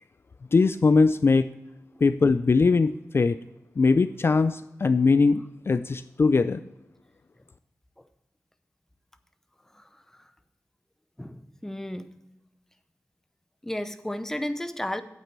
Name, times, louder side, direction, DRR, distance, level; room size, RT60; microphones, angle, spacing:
voice 1, 0.5-1.5 2.0-3.4 3.8-6.6, left 4 dB, 45° left, 11 dB, 0.4 m, -21 dB
voice 2, 11.2-12.2 13.6-15.0, left 1 dB, 5° left, 10 dB, 0.7 m, -33 dB
9.1 x 8.3 x 4.4 m, 0.93 s
wide cardioid pair, 85°, 6 cm